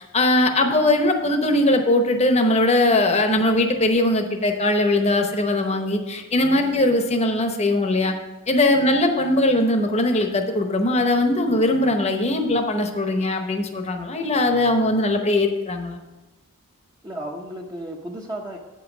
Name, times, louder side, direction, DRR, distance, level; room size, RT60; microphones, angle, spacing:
voice 1, 0.1-8.1 8.5-16.0, left 1 dB, 30° left, 5 dB, 0.8 m, -20 dB
voice 2, 0.7-1.0 6.3-6.8 8.7-9.0 17.0-18.6, right 1 dB, 20° right, 0 dB, 0.7 m, -35 dB
8.6 x 5.4 x 6.0 m, 1.1 s
head